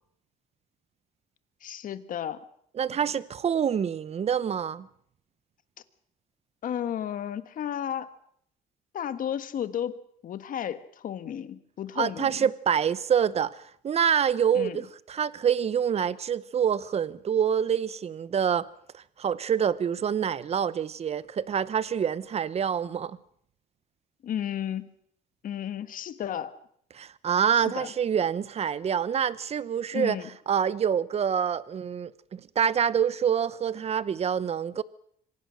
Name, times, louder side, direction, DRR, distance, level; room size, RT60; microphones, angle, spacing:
voice 1, 1.6-2.4 6.6-8.1 8.9-10.0 10.2-12.5 14.5-14.8 24.2-24.9 25.4-26.6 27.5-27.9 29.9-30.3, left 9 dB, 55° left, 1.5 m, -33 dB
voice 2, 2.8-4.9 12.0-18.7 18.9-23.2 26.9-30.2 30.5-34.8, right 8 dB, 40° right, 0.9 m, -26 dB
25.5 x 17.5 x 6.4 m
cardioid pair, 110°, 17 cm